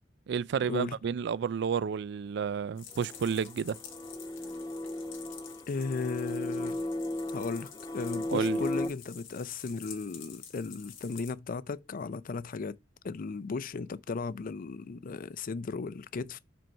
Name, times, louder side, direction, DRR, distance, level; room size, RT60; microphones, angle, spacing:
voice 1, 0.3-3.8 8.3-8.6, right 7 dB, 60° right, 0.3 m, -31 dB
sound 1, 2.8-11.3, left 8 dB, 80° left, 1.9 m, -49 dB
sound 2, 2.9-8.9, left 1 dB, 20° left, 1.0 m, -35 dB
voice 2, 5.7-6.8 7.3-12.7 13.0-16.4, left 4 dB, 45° left, 0.4 m, -36 dB
5.2 x 4.5 x 5.5 m
head